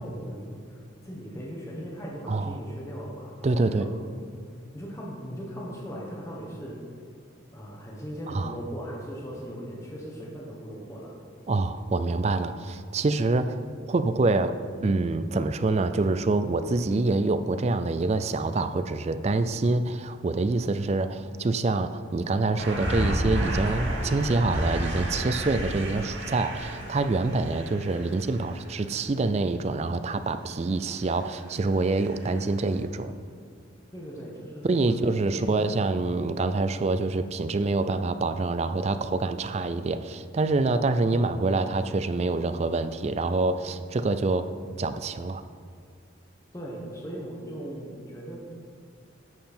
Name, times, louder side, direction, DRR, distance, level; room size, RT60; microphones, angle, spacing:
voice 1, 0.0-4.0 4.7-6.8 7.5-11.1 33.9-35.6 46.5-48.4, equal, 15° left, -4 dB, 1.3 m, -38 dB
voice 2, 3.4-3.9 8.3-8.5 11.5-13.6 13.9-33.1 34.6-44.5 44.8-45.4, right 3 dB, 35° right, 11 dB, 0.4 m, -26 dB
sound 1, 22.6-28.9 31.0-31.5 31.9-32.5 32.7-32.8, right 1 dB, 80° right, 2.5 m, -31 dB
10.5 x 7.5 x 4.4 m, 2.2 s
head